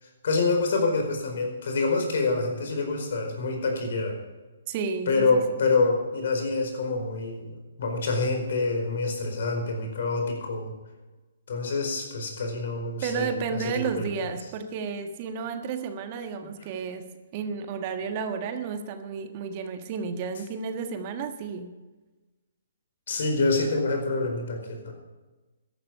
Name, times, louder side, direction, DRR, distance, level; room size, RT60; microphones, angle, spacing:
voice 1, 0.0-4.2 5.1-10.7 11.5-14.1 23.1-24.9, left 3 dB, 60° left, 3 dB, 4.7 m, -26 dB
voice 2, 4.7-5.4 13.0-21.7, right 6 dB, 40° right, 7 dB, 1.4 m, -32 dB
14.0 x 12.0 x 5.5 m, 1.2 s
figure-of-eight pair, 135°, 0 cm